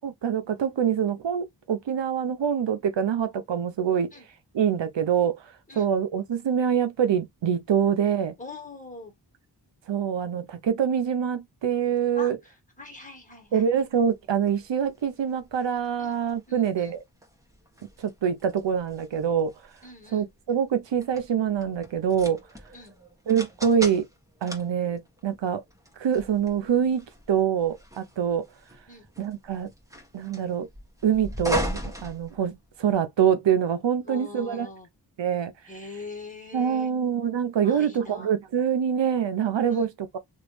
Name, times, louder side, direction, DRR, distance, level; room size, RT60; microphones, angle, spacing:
voice 1, 0.0-4.1 4.5-5.4 5.8-8.3 9.9-12.4 13.5-17.0 18.0-19.5 20.1-22.4 23.3-24.0 24.4-25.6 26.0-28.4 29.2-29.7 30.1-30.7 31.0-34.7 35.2-35.5 36.5-40.2, right 8 dB, 90° right, 0.7 m, -25 dB
voice 2, 8.4-9.1 12.1-13.7 16.0-16.2 16.5-16.9 19.8-20.3 22.7-22.9 28.9-29.1 34.0-34.9 35.7-36.9 37.6-38.3 39.7-39.9, left 3 dB, 20° left, 1.7 m, -43 dB
sound 1, 13.6-32.9, equal, 10° right, 1.2 m, -39 dB
3.0 x 2.5 x 3.2 m
wide cardioid pair, 70°, 42 cm